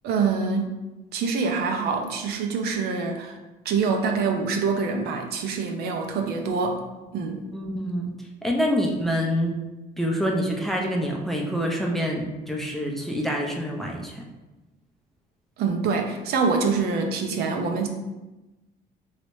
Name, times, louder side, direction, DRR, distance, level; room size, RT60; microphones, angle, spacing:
voice 1, 0.0-0.8 1.1-3.4 3.6-6.8 7.1-7.4 15.6-17.9, right 4 dB, 70° right, 3 dB, 0.5 m, -25 dB
voice 2, 7.5-9.6 10.0-14.3, equal, ahead, -1 dB, 0.5 m, -26 dB
3.1 x 2.8 x 3.0 m, 1.1 s
cardioid pair, 110°, 17 cm